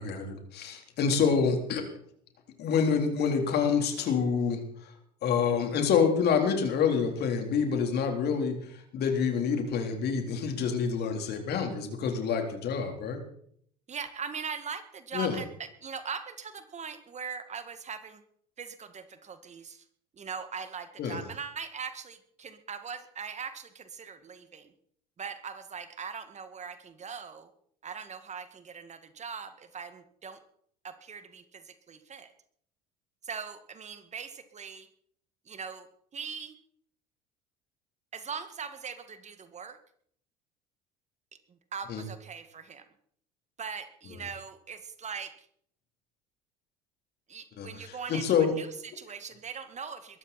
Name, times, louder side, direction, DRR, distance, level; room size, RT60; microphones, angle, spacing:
voice 1, 0.0-1.8 2.6-4.9 5.2-13.2 15.1-15.4 21.0-21.2 41.9-42.0 47.6-48.5, left 6 dB, 50° left, 4 dB, 3.9 m, -27 dB
voice 2, 13.9-18.2 18.6-19.8 20.1-24.7 25.2-27.5 27.8-30.4 30.8-32.3 33.2-34.9 35.5-35.9 36.1-36.6 38.1-39.8 41.5-42.9 43.6-45.5 47.3-50.2, right 6 dB, 35° right, 10 dB, 2.0 m, -41 dB
22.0 x 13.5 x 4.3 m, 0.64 s
hypercardioid pair, 65°, 21 cm